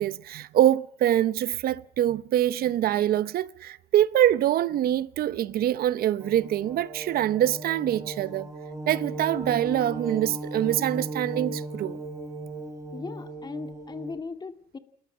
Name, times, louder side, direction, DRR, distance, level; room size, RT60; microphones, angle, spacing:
voice 1, 0.0-8.5 8.9-12.0, right 12 dB, 65° right, 0.9 m, -24 dB
sound 1, 6.2-14.2, right 1 dB, 15° right, 5.5 m, -37 dB
voice 2, 12.9-14.8, left 4 dB, 25° left, 2.3 m, -38 dB
29.0 x 14.0 x 8.6 m
cardioid pair, 110°, 17 cm